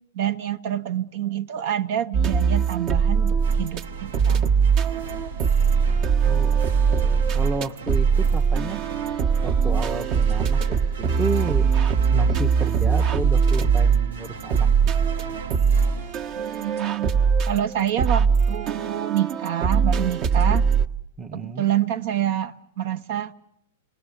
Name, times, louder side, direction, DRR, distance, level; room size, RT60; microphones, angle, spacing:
voice 1, 0.1-4.6 16.4-17.1 17.5-20.7 21.3-23.3, right 11 dB, 55° right, 1.0 m, -27 dB
sound 1, 2.1-3.8 4.1-20.9, right 6 dB, 40° right, 1.3 m, -21 dB
sound 2, 3.4-17.0, right 5 dB, 80° right, 1.4 m, -37 dB
voice 2, 6.2-6.6 6.9-8.8 9.4-11.7 12.1-14.7 21.2-21.6, right 4 dB, 15° right, 0.9 m, -31 dB
29.5 x 20.0 x 8.2 m
hypercardioid pair, 115°, 0 cm